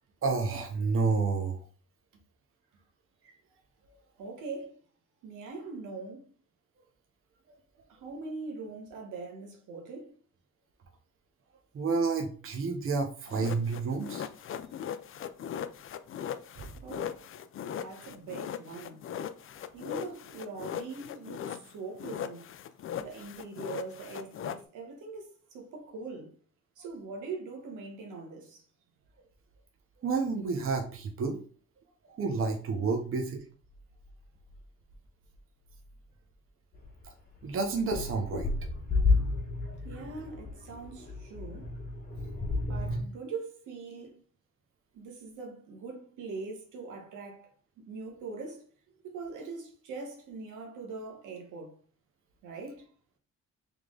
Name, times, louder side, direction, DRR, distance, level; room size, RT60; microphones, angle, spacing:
voice 1, 0.2-1.6 11.7-14.3 16.6-16.7 30.0-31.4 32.2-33.4 37.4-38.5, right 4 dB, 45° right, 0.9 m, -30 dB
voice 2, 4.2-4.8 5.2-6.3 7.9-10.1 16.8-17.2 17.6-19.0 19.7-22.5 23.0-26.3 26.8-28.6 39.8-41.7 42.7-44.2 44.9-47.5 47.8-48.6 49.1-51.7 52.4-52.9, right 4 dB, 85° right, 1.3 m, -42 dB
sound 1, 13.3-21.7 22.0-24.6, left 9 dB, 45° left, 0.4 m, -39 dB
sound 2, 36.7-36.9 37.4-43.0, left 3 dB, 30° left, 1.2 m, -31 dB
3.5 x 3.1 x 3.7 m
cardioid pair, 90°, 30 cm